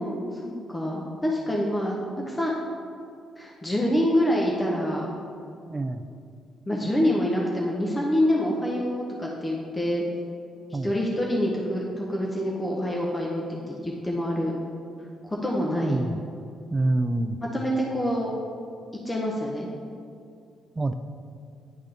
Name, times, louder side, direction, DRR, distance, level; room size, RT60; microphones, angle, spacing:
voice 1, 0.0-2.8 3.4-5.1 6.7-10.0 10.8-14.5 15.2-16.0 17.5-18.3 19.1-19.7, equal, 20° left, -2 dB, 0.8 m, -26 dB
voice 2, 5.7-6.0 10.7-10.9 15.8-16.2 16.7-17.4 20.8-20.9, right 2 dB, 20° right, 8 dB, 0.3 m, -26 dB
10.5 x 3.7 x 3.4 m, 2.4 s
cardioid pair, 90°, 0 cm